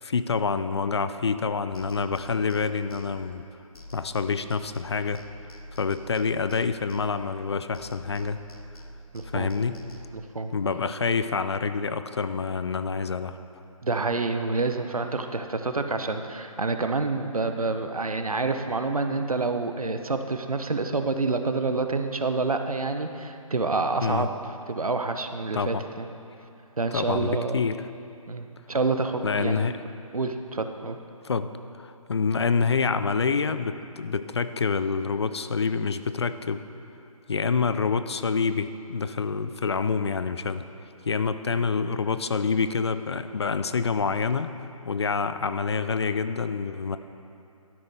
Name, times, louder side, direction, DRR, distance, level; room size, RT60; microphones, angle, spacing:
voice 1, 0.0-3.4 3.9-5.2 5.8-8.4 9.3-9.8 10.5-13.4 24.0-24.3 25.5-25.8 26.9-27.8 29.2-29.8 31.2-31.5 31.8-36.6 37.3-40.6 41.1-44.5 44.8-47.0, left 5 dB, 45° left, 11 dB, 0.4 m, -27 dB
sound 1, 1.7-7.5 7.7-10.1, equal, 80° left, 0.9 m, -45 dB
voice 2, 9.1-9.5 10.1-10.5 13.8-24.3 24.7-26.1 26.8-27.6 28.3-29.7 30.1-31.0, right 3 dB, 75° right, 7 dB, 0.8 m, -28 dB
12.0 x 10.0 x 3.5 m, 2.7 s
figure-of-eight pair, 145°, 19 cm